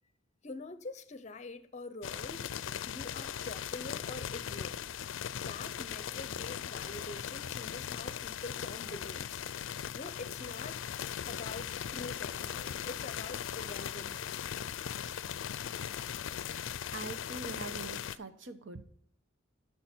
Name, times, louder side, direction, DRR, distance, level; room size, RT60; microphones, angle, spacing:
voice 1, 0.4-4.8 5.3-9.4 9.9-10.8 11.3-14.5, left 3 dB, 35° left, 0.7 m, -45 dB
sound 1, 2.0-18.2, left 9 dB, 80° left, 0.4 m, -39 dB
voice 2, 16.9-18.8, right 3 dB, 70° right, 0.9 m, -43 dB
13.0 x 6.0 x 4.4 m
head